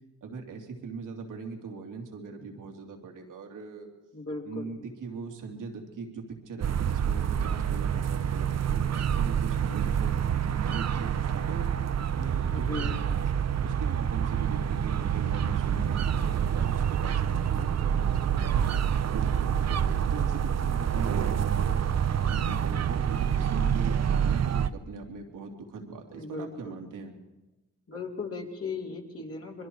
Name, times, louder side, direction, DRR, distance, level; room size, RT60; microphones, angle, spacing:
voice 1, 0.2-3.9 4.4-10.1 10.5-11.7 12.1-13.2 13.6-18.8 19.1-21.8 22.2-27.1, right 4 dB, 90° right, 2 dB, 3.0 m, -40 dB
voice 2, 4.1-4.7 12.5-12.9 26.1-26.8 27.9-29.7, left 3 dB, 50° left, -1 dB, 4.1 m, -37 dB
sound 1, 6.6-24.7, right 8 dB, 55° right, 0.8 m, -27 dB
26.0 x 22.0 x 4.8 m, 1.0 s
cardioid pair, 70°, 31 cm